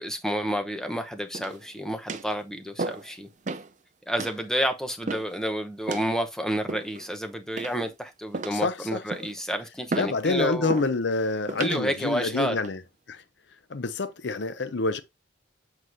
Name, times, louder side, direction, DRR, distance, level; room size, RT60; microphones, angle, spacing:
voice 1, 0.0-3.3 4.1-10.8 11.6-12.6, equal, 5° left, 0.8 m, -30 dB
sound 1, 1.3-1.7 2.1-2.3 2.8-3.1 3.5-3.7 4.2-4.4 5.1-5.4 5.9-6.1 6.7-7.1 7.6-7.9 8.3-8.7 9.1-9.4 9.9-10.2 10.7-10.9 11.5-11.8 12.4-12.7, right 3 dB, 40° right, 0.5 m, -34 dB
voice 2, 8.5-9.0 10.0-12.8 13.1-13.2 13.7-15.0, left 3 dB, 65° left, 0.6 m, -27 dB
7.6 x 4.7 x 2.6 m
head